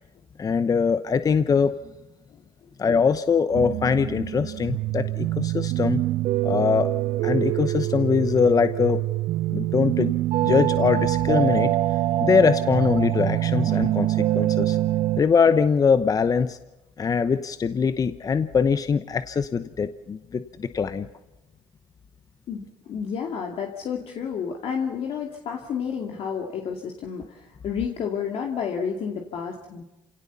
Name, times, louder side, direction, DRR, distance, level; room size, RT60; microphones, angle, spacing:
voice 1, 0.4-1.7 2.8-6.0 6.4-6.9 7.2-9.0 9.5-10.1 10.4-11.7 12.2-14.8 15.2-16.6 17.0-21.1, left 5 dB, 35° left, 12 dB, 0.9 m, -22 dB
sound 1, 3.5-15.2, right 15 dB, 65° right, 0.7 m, -25 dB
voice 2, 22.5-29.8, left 7 dB, 60° left, 1 dB, 2.5 m, -30 dB
28.0 x 17.5 x 7.0 m, 1.0 s
supercardioid pair, 85°, 11 cm